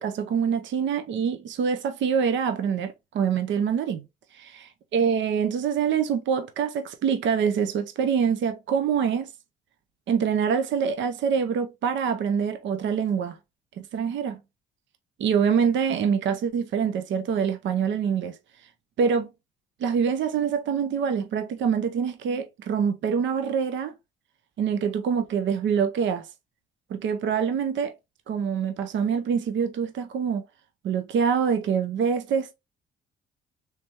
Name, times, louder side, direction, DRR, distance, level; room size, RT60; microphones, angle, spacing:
voice 1, 0.0-4.0 4.4-9.3 10.1-13.4 13.8-14.4 15.2-18.3 19.0-19.3 19.8-23.9 24.6-26.2 26.9-27.9 28.3-30.4 30.8-32.5, right 7 dB, 70° right, 0.7 m, -25 dB
3.3 x 3.3 x 2.9 m
cardioid pair, 90°, 20 cm